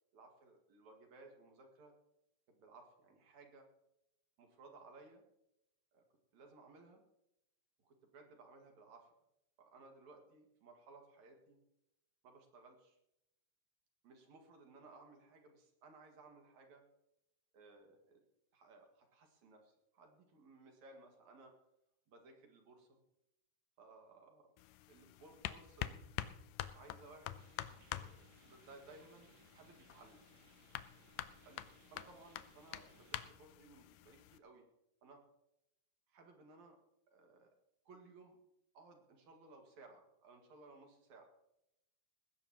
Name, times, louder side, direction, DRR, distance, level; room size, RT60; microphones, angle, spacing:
voice 1, 0.1-1.9 2.5-3.7 4.4-5.2 5.9-6.0 6.3-7.0 7.8-9.1 9.6-11.6 12.2-13.0 14.0-16.8 17.5-18.2 18.5-21.5 22.1-23.0 23.8-24.5 24.9-26.0 26.7-27.4 27.9-30.2 31.4-34.7 35.0-35.2 36.1-36.8 37.1-37.5 37.9-38.4 38.7-41.2, right 3 dB, 60° right, 2 dB, 3.1 m, -60 dB
sound 1, 24.6-34.4, left 13 dB, 80° left, 2.2 m, -48 dB
sound 2, 27.4-33.3, right 7 dB, 80° right, 1.1 m, -68 dB
20.0 x 16.0 x 3.0 m, 0.84 s
omnidirectional pair, 3.8 m